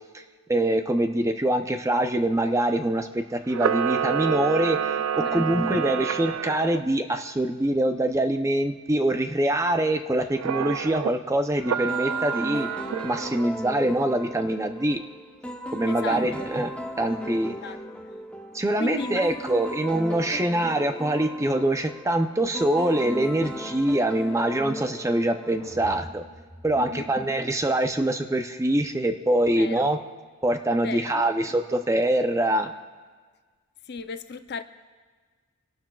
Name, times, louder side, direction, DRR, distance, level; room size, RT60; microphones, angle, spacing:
voice 1, 0.5-12.7 13.0-15.0 15.7-17.6 18.5-26.2 26.6-30.0 30.4-32.7, right 1 dB, 15° right, 7 dB, 0.5 m, -24 dB
Camera, 3.5-6.8 10.4-11.1 11.6-13.5, right 8 dB, 75° right, 0.3 m, -28 dB
voice 2, 5.1-5.4 15.8-16.5 17.6-17.8 18.8-19.2 26.7-27.1 29.6-29.9 30.8-31.3 33.9-34.6, left 4 dB, 50° left, 10 dB, 0.5 m, -35 dB
sound 1, 11.9-26.1, equal, 5° left, 0.9 m, -37 dB
sound 2, 25.6-27.9, equal, 30° right, 4.6 m, -45 dB
27.0 x 12.0 x 2.3 m, 1.5 s
head